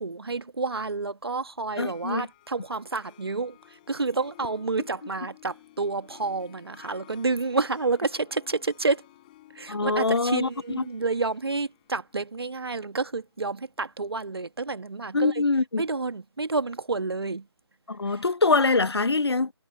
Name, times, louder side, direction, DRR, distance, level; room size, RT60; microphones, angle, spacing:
voice 1, 0.0-9.0 9.5-15.4 15.8-17.4 18.1-18.2, right 3 dB, 65° right, 1.3 m, -29 dB
Harp, 1.6-14.5, left 16 dB, 20° left, 3.8 m, -55 dB
voice 2, 1.8-2.3 9.7-10.8 15.1-15.8 17.9-19.5, left 3 dB, 70° left, 0.8 m, -24 dB
figure-of-eight pair, 155°, 14 cm